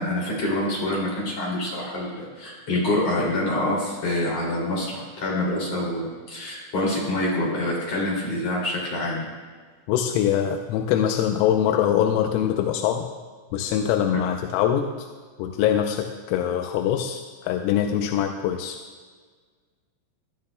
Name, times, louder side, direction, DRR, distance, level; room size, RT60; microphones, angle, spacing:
voice 1, 0.0-9.3, left 1 dB, 40° left, -4 dB, 2.9 m, -26 dB
voice 2, 9.9-13.1 13.5-15.1 15.4-18.8, left 10 dB, 90° left, 4 dB, 3.3 m, -23 dB
20.5 x 12.0 x 2.2 m, 1.5 s
omnidirectional pair, 6.0 m